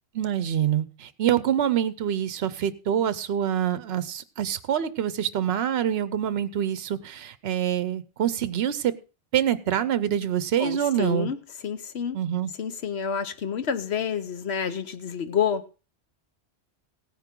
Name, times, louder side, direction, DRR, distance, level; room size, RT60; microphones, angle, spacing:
voice 1, 0.1-8.9 9.3-11.3 12.1-12.5, right 10 dB, 65° right, 15 dB, 0.9 m, -26 dB
voice 2, 10.6-11.4 11.6-12.2 12.6-15.7, left 7 dB, 70° left, 11 dB, 1.2 m, -28 dB
16.5 x 9.5 x 3.7 m, 0.33 s
omnidirectional pair, 1.1 m